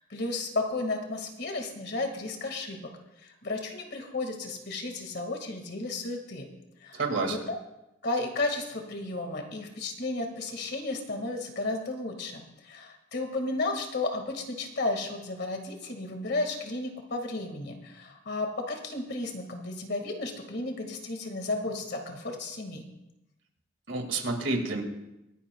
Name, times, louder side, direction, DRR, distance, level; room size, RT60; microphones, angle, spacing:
voice 1, 0.0-2.9 3.2-6.5 6.8-7.6 8.0-22.8, left 2 dB, 60° left, 4 dB, 1.9 m, -33 dB
voice 2, 6.9-7.4 23.9-24.8, right 3 dB, 75° right, 3 dB, 2.2 m, -29 dB
25.5 x 10.0 x 2.3 m, 0.91 s
head